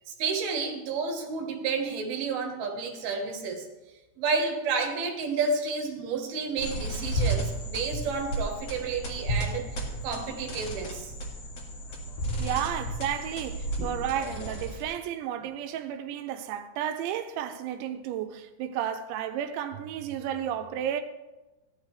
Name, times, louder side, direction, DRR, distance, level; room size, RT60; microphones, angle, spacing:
voice 1, 0.2-3.7 4.2-11.1 13.8-13.9, right 4 dB, 65° right, 2.8 m, -31 dB
sound 1, 6.6-15.0, right 1 dB, 50° left, 2.2 m, -33 dB
voice 2, 12.4-21.0, right 10 dB, 85° right, 3.0 m, -32 dB
15.5 x 12.0 x 3.2 m
omnidirectional pair, 5.3 m